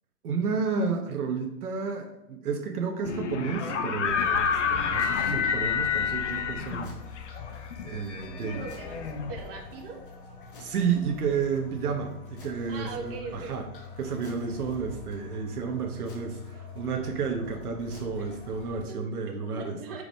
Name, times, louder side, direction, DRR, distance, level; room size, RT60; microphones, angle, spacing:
voice 1, 0.2-6.9 7.8-8.6 10.6-13.7 14.0-20.0, right 5 dB, 70° right, 4 dB, 1.1 m, -31 dB
sound 1, 3.0-9.9, left 7 dB, 50° left, 0.7 m, -29 dB
sound 2, 4.1-18.8, left 6 dB, 35° left, 1.0 m, -44 dB
voice 2, 8.3-10.0 12.7-13.6 18.9-20.0, right 4 dB, 35° right, 0 dB, 1.3 m, -40 dB
5.1 x 4.8 x 5.2 m, 0.90 s
hypercardioid pair, 175°, 46 cm